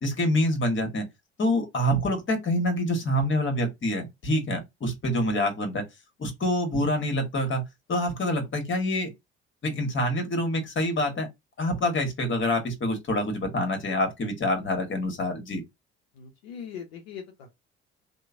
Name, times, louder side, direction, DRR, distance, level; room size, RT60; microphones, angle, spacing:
voice 1, 0.0-1.0 1.4-5.8 6.2-7.6 7.9-9.1 9.6-11.3 11.6-15.6, left 1 dB, 40° left, 1.2 m, -26 dB
voice 2, 16.1-17.5, left 7 dB, 80° left, 0.6 m, -41 dB
2.9 x 2.1 x 2.4 m
hypercardioid pair, 55°, 31 cm